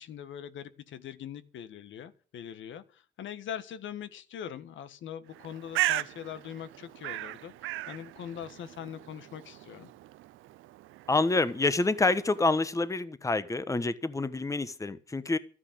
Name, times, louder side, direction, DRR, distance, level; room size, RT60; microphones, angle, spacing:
voice 1, 0.0-9.9, left 9 dB, 75° left, 1.5 m, -42 dB
Bird, 5.3-12.9, right 16 dB, 85° right, 0.6 m, -37 dB
voice 2, 11.1-15.4, left 3 dB, 15° left, 1.1 m, -27 dB
13.0 x 9.9 x 7.9 m
cardioid pair, 90°, 20 cm